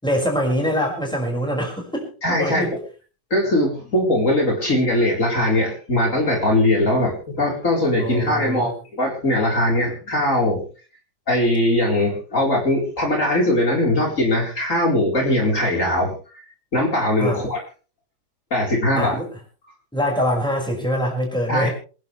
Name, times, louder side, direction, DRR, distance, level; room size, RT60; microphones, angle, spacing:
voice 1, 0.0-2.7 8.0-8.7 17.2-17.4 18.9-19.3 19.9-21.7, equal, ahead, 0 dB, 5.8 m, -24 dB
voice 2, 2.2-2.6 3.3-10.6 11.3-16.1 16.7-17.6 18.5-19.2 21.5-21.7, left 1 dB, 50° left, -1 dB, 4.6 m, -20 dB
27.0 x 11.0 x 3.3 m, 0.37 s
omnidirectional pair, 1.8 m